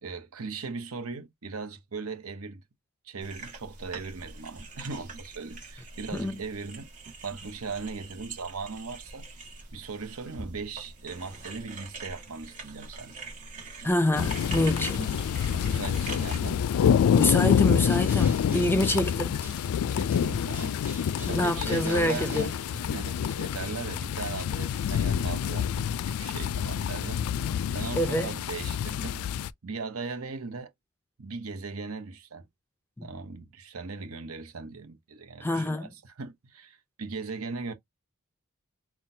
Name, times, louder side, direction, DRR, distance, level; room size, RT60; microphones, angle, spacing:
voice 1, 0.0-2.6 3.0-6.9 7.2-9.3 9.7-13.2 15.5-16.6 18.7-18.9 19.9-29.2 29.6-30.7 31.2-32.5 33.0-37.7, right 4 dB, 75° right, 0.9 m, -38 dB
sound 1, 3.2-16.4, right 3 dB, 35° right, 1.5 m, -44 dB
voice 2, 13.8-15.1 17.1-19.4 21.3-22.5 27.9-28.3 33.0-33.1 35.4-35.9, left 1 dB, 10° left, 0.5 m, -27 dB
sound 2, 14.2-29.5, left 8 dB, 75° left, 0.3 m, -27 dB
Bird, 17.7-19.8 20.1-23.2, right 2 dB, 10° right, 1.1 m, -47 dB
5.7 x 2.3 x 2.7 m
head